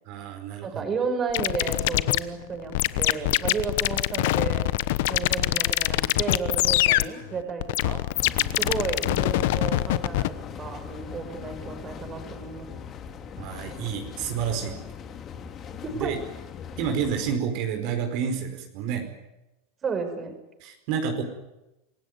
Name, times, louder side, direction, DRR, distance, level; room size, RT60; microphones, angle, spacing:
voice 1, 0.0-0.8 8.3-8.8 13.4-14.8 15.9-16.1 16.8-19.1 20.6-21.2, right 7 dB, 55° right, 5 dB, 5.0 m, -30 dB
voice 2, 0.6-4.7 5.1-8.0 8.6-12.7 15.8-16.1 19.8-20.4, right 5 dB, 25° right, 6 dB, 5.6 m, -32 dB
sound 1, 1.3-10.3, left 17 dB, 70° left, 1.0 m, -24 dB
sound 2, 8.1-17.3, left 7 dB, 35° left, 2.9 m, -40 dB
27.0 x 16.0 x 9.7 m, 0.97 s
supercardioid pair, 120°, 0 cm